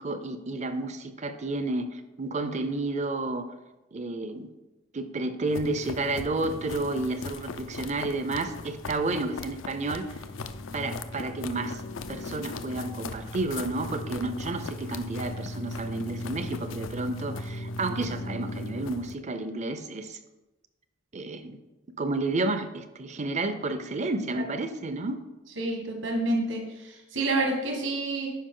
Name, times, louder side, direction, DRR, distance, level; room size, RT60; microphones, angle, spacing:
voice 1, 0.0-3.5 3.9-4.5 4.9-10.2 10.7-11.8 12.1-20.2 21.1-21.6 22.0-25.2, right 2 dB, 35° right, 9 dB, 0.5 m, -31 dB
sound 1, 5.5-19.2, left 2 dB, 75° left, 0.5 m, -38 dB
voice 2, 25.6-28.3, right 2 dB, 70° right, 1 dB, 1.5 m, -28 dB
10.0 x 5.1 x 3.8 m, 1.0 s
head